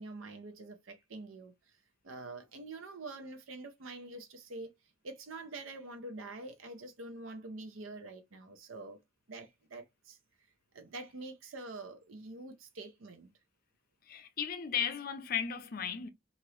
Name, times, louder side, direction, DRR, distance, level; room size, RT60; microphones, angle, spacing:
voice 1, 0.0-1.8 2.0-4.7 5.0-9.0 9.3-10.2 10.7-13.3, right 2 dB, 90° right, 0.6 m, -46 dB
voice 2, 14.1-16.1, left 8 dB, 45° left, 0.5 m, -35 dB
2.9 x 2.5 x 3.1 m
head